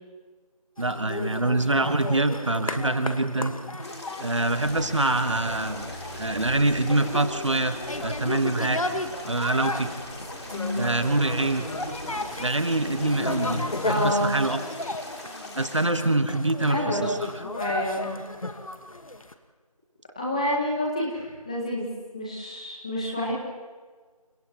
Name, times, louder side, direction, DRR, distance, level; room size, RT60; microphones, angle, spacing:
sound 1, 0.8-19.3, left 2 dB, 60° left, 1.6 m, -34 dB
voice 1, 0.8-3.5 4.2-5.8 6.2-8.8 9.2-9.9 10.7-11.7 12.4-14.6 15.5-17.0, right 2 dB, 50° right, 9 dB, 1.4 m, -25 dB
sound 2, 3.8-15.9, left 2 dB, 45° left, 2.9 m, -42 dB
sound 3, 4.6-14.1, right 1 dB, 30° right, 6.8 m, -43 dB
voice 2, 10.5-10.9 13.8-14.4 16.6-17.1 17.4-18.2 20.1-21.9 22.1-23.3, left 1 dB, 10° left, -4 dB, 1.7 m, -28 dB
30.0 x 29.5 x 3.1 m, 1.5 s
figure-of-eight pair, 170°, 20 cm